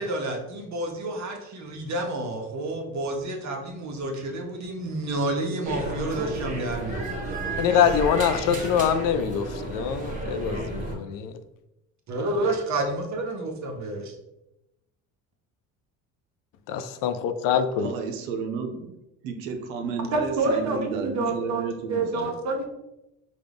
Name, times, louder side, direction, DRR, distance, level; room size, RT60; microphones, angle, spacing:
voice 1, 0.0-7.9 12.1-14.1 20.1-22.7, right 2 dB, 45° right, 2 dB, 1.1 m, -29 dB
sound 1, 5.7-11.0, right 2 dB, 20° right, 1.3 m, -32 dB
voice 2, 7.6-11.4 16.7-17.9, left 8 dB, 55° left, 10 dB, 0.5 m, -24 dB
voice 3, 17.8-18.9 19.2-22.3, right 5 dB, 75° right, 5 dB, 0.7 m, -32 dB
5.0 x 2.4 x 3.4 m, 0.91 s
hypercardioid pair, 75°, 41 cm